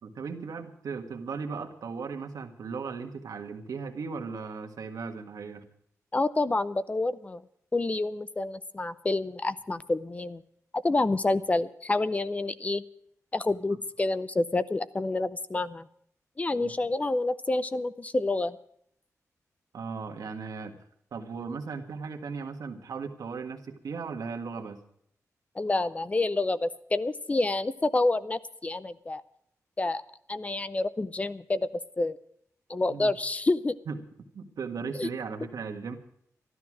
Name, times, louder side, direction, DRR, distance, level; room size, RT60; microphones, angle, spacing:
voice 1, 0.0-5.7 13.7-13.8 16.6-16.7 19.7-20.8 21.1-24.8 32.9-33.2 33.9-34.0 34.3-36.0, right 5 dB, 85° right, 5 dB, 1.7 m, -37 dB
voice 2, 6.1-7.4 7.7-10.4 10.8-12.8 13.3-15.9 16.4-18.6 25.6-29.2 29.8-30.0 30.3-31.7 32.0-32.2 32.7-33.7 35.0-35.1, left 2 dB, 25° left, 15 dB, 0.5 m, -28 dB
13.0 x 13.0 x 6.2 m, 0.67 s
wide cardioid pair, 155°, 6 cm